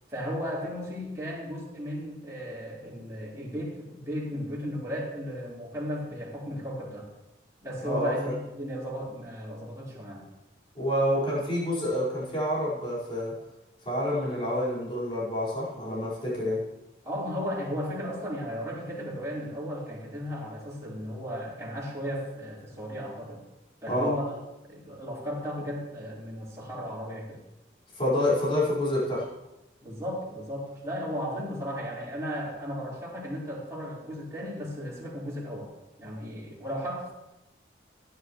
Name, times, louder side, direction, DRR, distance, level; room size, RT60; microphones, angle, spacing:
voice 1, 0.1-7.1 7.6-10.2 17.0-23.4 23.8-24.3 24.7-27.4 29.8-35.7 36.0-37.1, equal, 15° right, -8 dB, 4.3 m, -35 dB
voice 2, 7.8-8.3 10.8-13.3 13.9-16.6 23.9-24.1 27.9-29.3, left 1 dB, 30° left, -9 dB, 5.0 m, -28 dB
16.5 x 10.5 x 3.2 m, 0.98 s
head